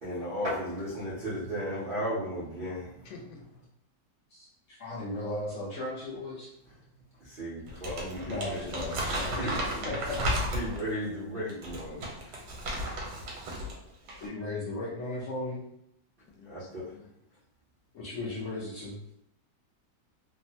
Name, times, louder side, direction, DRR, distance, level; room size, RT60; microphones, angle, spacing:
voice 1, 0.0-3.1 7.2-8.8 9.1-9.9 10.5-12.4 16.5-16.9, equal, 55° right, -9 dB, 0.6 m, -35 dB
voice 2, 3.0-3.4 16.3-17.1, left 4 dB, 85° left, 2 dB, 1.2 m, -49 dB
voice 3, 4.3-6.5 8.3-9.6 9.8-10.2 14.2-15.6 17.9-19.0, left 2 dB, 70° left, -5 dB, 0.7 m, -36 dB
Crumpling crinkling, 7.7-10.9 11.5-13.8 14.0-14.3, equal, 75° right, 1.3 m, -34 dB
3.0 x 2.1 x 2.6 m, 0.75 s
omnidirectional pair, 1.9 m